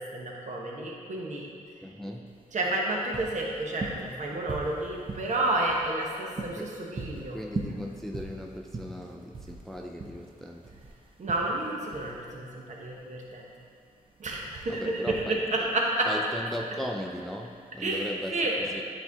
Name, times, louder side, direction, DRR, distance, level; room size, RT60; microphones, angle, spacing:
voice 1, 0.0-1.5 2.5-7.4 11.2-13.4 14.2-15.5 15.7-16.1 17.8-18.7, right 2 dB, 55° right, -2 dB, 1.1 m, -30 dB
voice 2, 1.8-2.3 6.6-6.7 7.1-10.8 14.7-15.7 16.1-18.8, equal, ahead, 1 dB, 0.4 m, -38 dB
sound 1, 2.3-17.9, right 3 dB, 35° right, 0.7 m, -41 dB
8.9 x 4.5 x 3.5 m, 2.3 s
cardioid pair, 95°, 15 cm